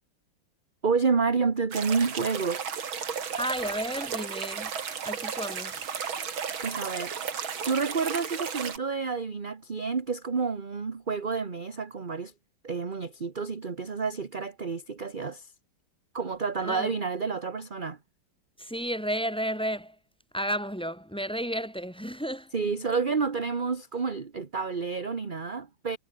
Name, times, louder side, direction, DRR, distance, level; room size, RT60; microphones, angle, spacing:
voice 1, 0.8-2.6 6.6-7.1 7.6-12.3 12.6-15.5 16.1-18.0 22.5-26.0, right 5 dB, 30° right, 1.3 m, -29 dB
sound 1, 1.7-8.8, right 7 dB, 80° right, 3.0 m, -34 dB
voice 2, 3.4-4.7 5.0-5.9 16.6-16.9 18.6-20.0 20.3-22.5, equal, ahead, 2.9 m, -32 dB
omnidirectional pair, 2.2 m